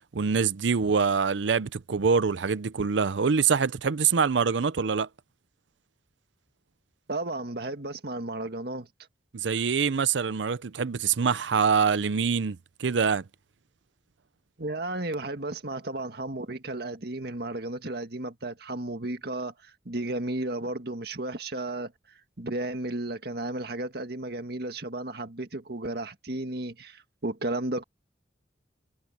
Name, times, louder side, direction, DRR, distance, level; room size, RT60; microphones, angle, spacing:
voice 1, 0.1-5.1 9.3-13.2, right 5 dB, 80° right, 0.6 m, -25 dB
voice 2, 7.1-8.9 14.6-27.8, right 2 dB, 60° right, 1.8 m, -33 dB
head